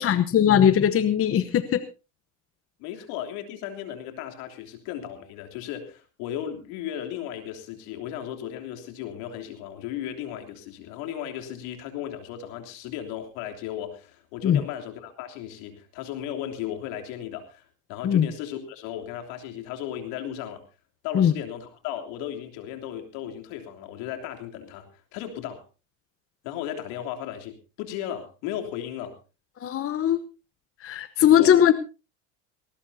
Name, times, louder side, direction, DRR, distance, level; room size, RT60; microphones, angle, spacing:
voice 1, 0.0-1.8 14.4-14.6 18.0-18.3 21.1-21.3 29.6-30.2 30.8-31.7, left 9 dB, 35° left, 12 dB, 1.0 m, -20 dB
voice 2, 2.8-20.6 21.0-25.6 26.4-29.2 31.3-31.6, left 10 dB, 75° left, 5 dB, 3.3 m, -35 dB
19.0 x 19.0 x 2.8 m, 0.31 s
supercardioid pair, 110°, 40 cm